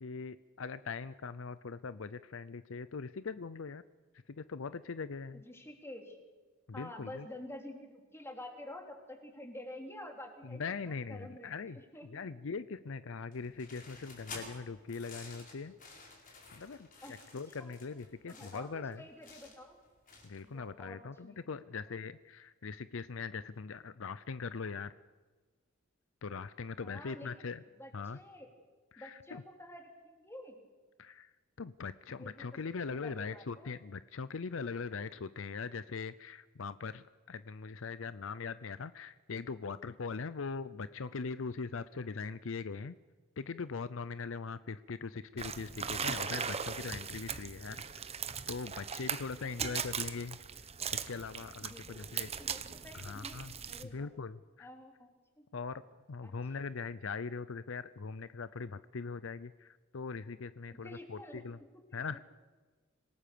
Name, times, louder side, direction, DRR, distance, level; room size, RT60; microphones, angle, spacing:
voice 1, 0.0-3.8 4.3-5.4 6.7-7.3 10.4-15.7 16.3-19.1 20.2-24.9 26.2-27.6 27.9-28.2 28.9-29.4 31.0-31.3 31.6-43.0 43.4-47.8 48.5-50.7 50.9-52.3 52.9-53.5 53.8-54.7 55.5-55.8 56.1-61.6 61.9-62.2, left 5 dB, 70° left, 15 dB, 0.6 m, -41 dB
voice 2, 5.3-6.2 6.7-12.1 17.0-17.2 17.6-17.7 18.3-19.8 20.4-21.4 21.9-22.0 26.8-27.5 27.8-28.5 29.0-30.6 32.2-32.4 32.9-33.7 49.4-49.5 51.6-53.4 53.7-54.1 54.6-55.1 55.4-55.5 56.2-56.3 60.7-61.4 61.9-62.2, left 1 dB, 10° left, 3 dB, 3.1 m, -49 dB
sound 1, 13.3-20.5, left 3 dB, 40° left, 4.8 m, -51 dB
sound 2, 45.4-53.8, right 7 dB, 30° right, 1.0 m, -39 dB
26.0 x 18.0 x 6.9 m, 1.3 s
head